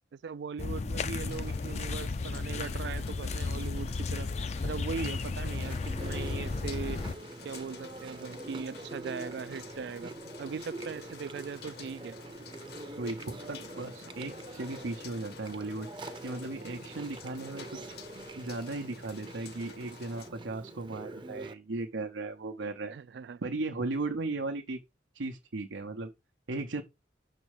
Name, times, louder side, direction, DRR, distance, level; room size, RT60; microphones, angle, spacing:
voice 1, 0.1-4.3 4.6-7.0 7.4-10.1 10.4-12.2 22.9-23.4, right 5 dB, 65° right, 0.3 m, -39 dB
sound 1, 0.6-7.2, left 3 dB, 35° left, 0.4 m, -34 dB
sound 2, 1.2-20.3, left 6 dB, 55° left, 0.9 m, -51 dB
Chewing mastication, 5.4-21.5, right 2 dB, 25° right, 0.6 m, -45 dB
voice 2, 13.0-15.9 16.2-17.9 18.4-22.9 23.4-24.8 25.1-26.1 26.5-26.8, right 2 dB, 85° right, 0.8 m, -36 dB
6.4 x 4.1 x 4.8 m
head